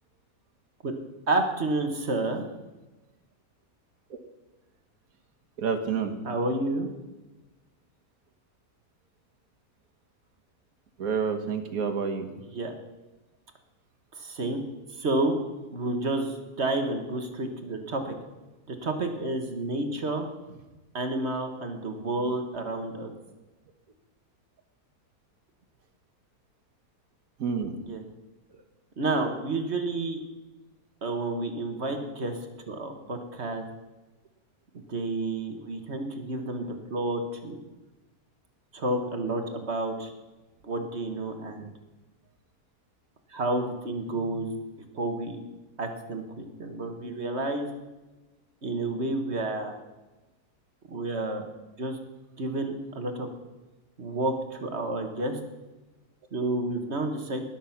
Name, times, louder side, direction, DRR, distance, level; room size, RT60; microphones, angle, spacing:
voice 1, 1.3-2.4 6.2-6.9 12.5-12.7 14.2-14.6 15.0-15.4 15.7-18.1 18.7-20.3 20.9-23.1 27.9-28.0 29.0-30.2 31.0-32.4 32.7-33.6 34.9-37.6 38.7-40.1 40.6-41.7 43.3-44.5 44.9-45.4 45.8-47.7 48.6-49.8 50.9-51.4 51.8-52.0 52.4-53.3 54.0-55.4 56.3-57.4, right 2 dB, 45° right, 5 dB, 1.7 m, -30 dB
voice 2, 5.6-6.1 11.0-12.3 27.4-27.8, right 6 dB, 65° right, 5 dB, 1.8 m, -28 dB
19.5 x 7.5 x 5.8 m, 1.1 s
omnidirectional pair, 1.6 m